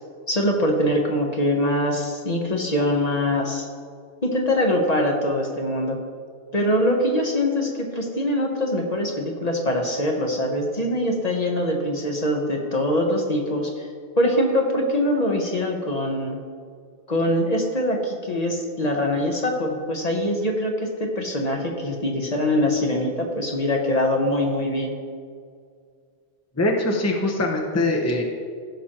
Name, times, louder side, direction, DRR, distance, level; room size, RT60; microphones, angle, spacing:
voice 1, 0.3-3.7 4.2-6.0 6.5-13.9 14.2-16.4 17.1-25.0, left 1 dB, 40° left, 1 dB, 1.1 m, -23 dB
voice 2, 26.6-28.2, left 2 dB, 15° left, 0 dB, 0.8 m, -22 dB
15.5 x 6.1 x 3.0 m, 2.1 s
omnidirectional pair, 1.1 m